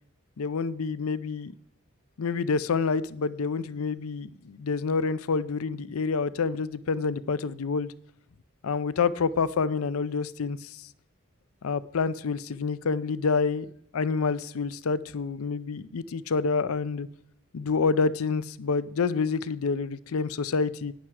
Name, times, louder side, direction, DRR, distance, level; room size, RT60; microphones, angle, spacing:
voice 1, 0.4-1.5 2.2-7.9 8.6-10.7 11.6-13.7 13.9-17.1 17.5-20.9, left 5 dB, 80° left, 0.5 m, -28 dB
11.5 x 9.7 x 4.8 m
head